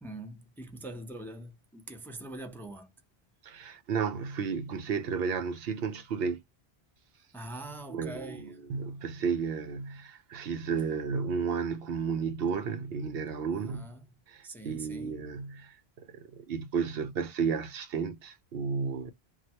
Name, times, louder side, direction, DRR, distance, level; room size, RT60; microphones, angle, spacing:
voice 1, 0.0-2.9 7.3-8.6 13.5-14.1 14.4-15.3, right 2 dB, ahead, 0.6 m, -43 dB
voice 2, 3.4-6.4 7.9-13.8 14.3-19.1, right 6 dB, 70° right, 0.8 m, -33 dB
3.1 x 2.2 x 2.8 m
omnidirectional pair, 1.0 m